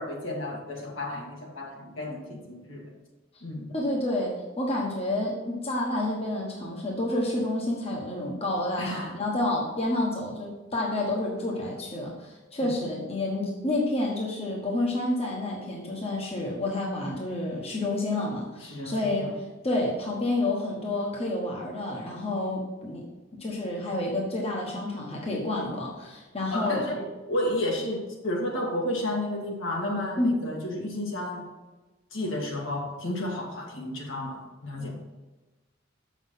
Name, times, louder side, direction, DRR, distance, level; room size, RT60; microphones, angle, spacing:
voice 1, 0.0-2.9 3.4-3.7 8.8-9.2 12.6-12.7 18.6-19.3 26.5-31.5 32.1-35.0, left 1 dB, 70° left, -1 dB, 1.9 m, -32 dB
voice 2, 3.7-19.4 19.6-23.0 23.4-26.9 30.2-30.4, left 1 dB, 30° left, -2 dB, 1.3 m, -29 dB
7.0 x 6.2 x 5.6 m, 1.2 s
head